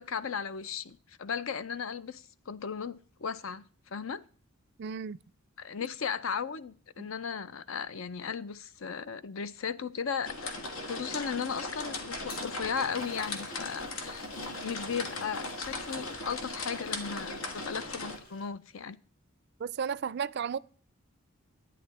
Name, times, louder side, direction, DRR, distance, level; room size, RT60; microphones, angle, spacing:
voice 1, 0.0-4.2 5.6-10.6 10.9-14.3 14.6-19.0, left 6 dB, 70° left, 0.6 m, -36 dB
voice 2, 4.8-5.2 7.0-7.1 19.6-20.6, right 7 dB, 55° right, 0.4 m, -33 dB
sound 1, 10.2-18.2, left 2 dB, 90° left, 1.7 m, -38 dB
Toilet flush, 12.1-18.5, left 2 dB, 45° left, 4.2 m, -53 dB
11.0 x 9.3 x 4.1 m
head